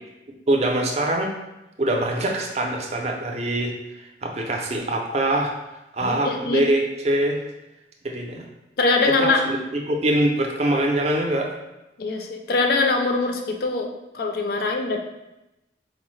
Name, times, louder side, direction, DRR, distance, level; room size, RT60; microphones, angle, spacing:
voice 1, 0.5-1.3 1.8-5.5 5.9-7.4 8.0-8.4 9.2-11.5, right 1 dB, 35° right, 1 dB, 0.4 m, -23 dB
voice 2, 6.0-6.7 8.8-9.4 12.0-13.9 14.1-15.0, left 3 dB, 55° left, 3 dB, 0.4 m, -22 dB
4.5 x 2.0 x 3.1 m, 0.96 s
head